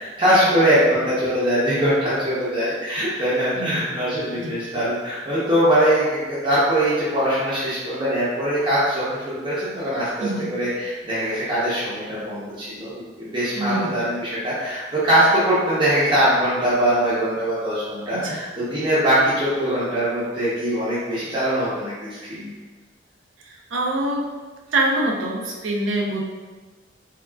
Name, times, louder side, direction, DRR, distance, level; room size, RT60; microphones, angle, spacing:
voice 1, 0.0-22.5, right 1 dB, 25° right, -11 dB, 0.6 m, -22 dB
voice 2, 13.6-13.9 18.1-18.4 23.4-24.3 24.7-26.2, right 1 dB, 85° right, -1 dB, 0.5 m, -25 dB
3.4 x 2.3 x 2.2 m, 1.3 s
head